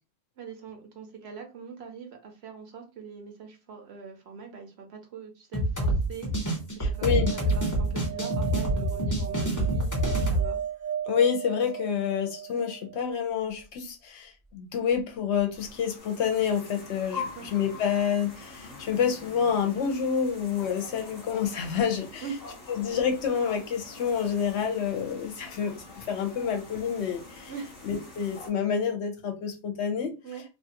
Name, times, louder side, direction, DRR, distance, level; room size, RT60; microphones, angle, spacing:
voice 1, 0.4-10.6 17.1-17.5 22.2-22.4 27.5-27.7 30.2-30.4, right 6 dB, 65° right, 0.8 m, -43 dB
sound 1, 5.5-10.5, right 1 dB, 20° left, 0.6 m, -26 dB
voice 2, 6.8-7.3 11.1-22.2 22.7-27.5 27.8-30.2, left 7 dB, 70° left, 0.8 m, -28 dB
sound 2, 6.9-13.1 15.4-15.5 15.6-15.7, right 9 dB, 35° right, 0.6 m, -37 dB
sound 3, 15.5-28.5, left 4 dB, 40° left, 0.9 m, -44 dB
2.5 x 2.3 x 2.8 m
omnidirectional pair, 1.3 m